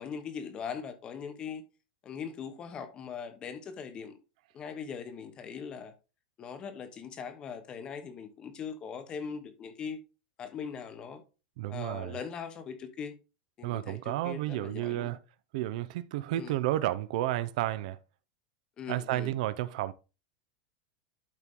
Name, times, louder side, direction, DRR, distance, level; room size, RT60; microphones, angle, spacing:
voice 1, 0.0-1.6 2.0-4.2 4.5-5.9 6.4-10.0 10.4-11.2 11.7-13.1 13.6-15.1 16.3-16.5 18.8-19.3, left 6 dB, 20° left, 1.1 m, -40 dB
voice 2, 11.6-12.2 13.6-15.2 15.5-18.0 18.9-19.9, right 14 dB, 55° right, 0.7 m, -31 dB
12.0 x 4.6 x 3.8 m
supercardioid pair, 175°, 5 cm